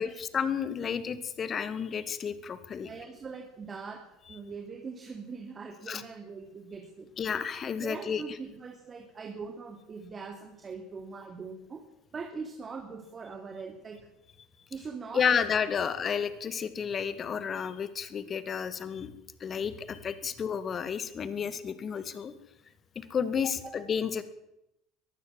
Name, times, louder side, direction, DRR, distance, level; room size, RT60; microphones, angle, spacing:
voice 1, 0.0-2.9 5.9-6.0 7.2-8.2 15.1-19.1 19.4-22.3 23.0-24.2, left 7 dB, 35° left, 13 dB, 2.2 m, -31 dB
voice 2, 2.8-7.1 7.8-11.8 12.1-14.1 14.7-15.4 23.6-23.7, right 5 dB, 30° right, 4 dB, 3.1 m, -42 dB
22.0 x 15.0 x 7.8 m, 0.86 s
hypercardioid pair, 70°, 0 cm